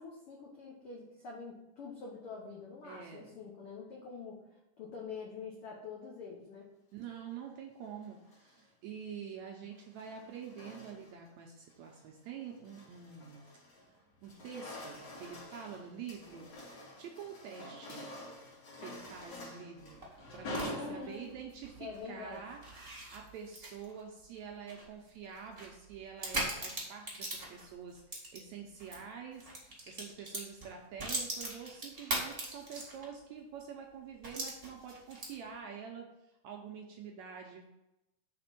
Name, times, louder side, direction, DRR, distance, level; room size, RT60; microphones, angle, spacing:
voice 1, 0.0-4.4 4.8-6.7 20.7-21.2 21.8-22.4, left 4 dB, 75° left, -2 dB, 1.2 m, -45 dB
voice 2, 2.8-3.4 6.9-13.5 13.9-16.5 17.0-18.1 18.8-20.0 20.3-36.1 36.4-37.7, right 7 dB, 75° right, 1 dB, 1.7 m, -47 dB
sound 1, 8.1-8.6 9.7-11.3 11.7-12.0 12.5-13.9 14.2-21.5, left 1 dB, 55° left, 2.7 m, -47 dB
sound 2, 19.8-29.0 29.3-33.2 33.6-33.7 34.2-35.6, right 1 dB, 45° right, 0.4 m, -41 dB
5.9 x 4.2 x 5.9 m, 0.92 s
omnidirectional pair, 3.8 m